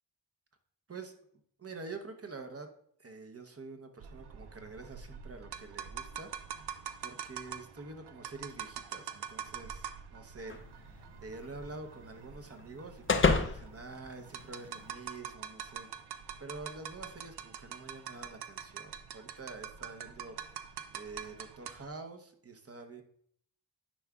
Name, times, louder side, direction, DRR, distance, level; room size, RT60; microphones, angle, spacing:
voice 1, 1.6-2.7 3.0-15.9 16.1-23.0, right 3 dB, 40° right, 6 dB, 0.9 m, -47 dB
sound 1, 4.0-21.9, right 8 dB, 90° right, 0.5 m, -45 dB
sound 2, 10.5-14.9, left 4 dB, 30° left, 0.6 m, -33 dB
10.0 x 4.7 x 2.4 m, 0.65 s
cardioid pair, 70°, 39 cm